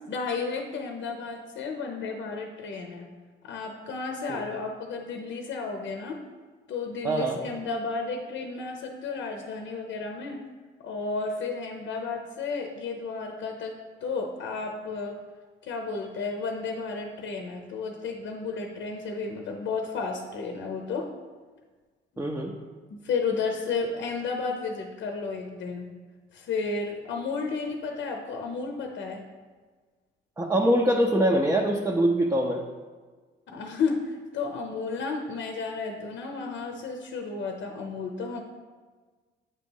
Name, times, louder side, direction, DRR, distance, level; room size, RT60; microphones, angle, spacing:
voice 1, 0.1-3.1 3.4-6.2 6.7-10.4 10.8-15.2 15.6-21.1 22.9-25.9 26.3-29.2 33.5-38.4, left 4 dB, 70° left, 3 dB, 0.7 m, -32 dB
voice 2, 7.0-7.4 22.2-22.5 30.4-32.6, right 1 dB, 10° right, 0 dB, 0.6 m, -23 dB
8.3 x 3.0 x 5.4 m, 1.4 s
cardioid pair, 90°, 20 cm